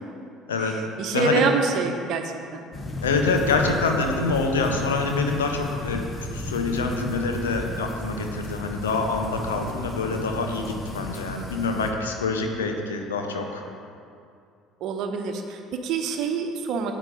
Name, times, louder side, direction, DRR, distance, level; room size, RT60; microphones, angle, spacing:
voice 1, 0.6-2.6 14.8-16.9, right 4 dB, 50° right, 5 dB, 1.0 m, -26 dB
voice 2, 1.1-1.4 3.0-6.1 6.3-13.6, left 4 dB, 75° left, 4 dB, 0.9 m, -26 dB
sound 1, 2.7-11.9, left 1 dB, 30° left, 1.3 m, -34 dB
9.0 x 8.1 x 5.2 m, 2.4 s
figure-of-eight pair, 60°, 0 cm